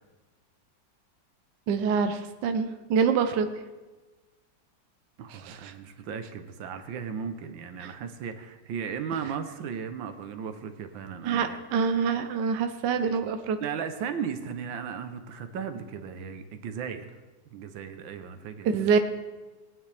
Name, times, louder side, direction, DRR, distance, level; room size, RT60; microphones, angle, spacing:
voice 1, 1.7-3.5 5.3-5.7 7.8-7.9 11.2-13.6 18.6-19.0, right 6 dB, 70° right, 8 dB, 1.3 m, -26 dB
voice 2, 5.2-11.6 13.6-17.1 17.5-18.9, right 7 dB, 90° right, 8 dB, 1.6 m, -36 dB
19.0 x 9.5 x 3.3 m, 1.2 s
omnidirectional pair, 2.0 m